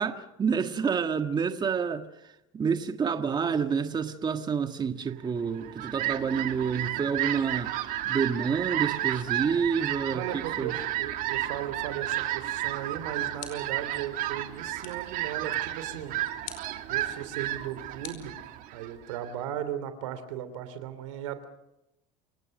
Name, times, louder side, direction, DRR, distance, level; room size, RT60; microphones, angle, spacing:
voice 1, 0.0-7.7 8.0-10.7, right 6 dB, 25° right, 1.6 m, -28 dB
Fowl, 5.4-19.3, right 14 dB, 60° right, 2.4 m, -32 dB
voice 2, 10.1-16.2 16.9-18.3 18.7-21.4, right 10 dB, 90° right, 3.0 m, -36 dB
sound 1, 13.4-13.9 14.8-15.2 16.4-16.8 18.0-18.9, left 9 dB, 60° left, 5.0 m, -45 dB
28.5 x 17.0 x 6.6 m
supercardioid pair, 110°, 16 cm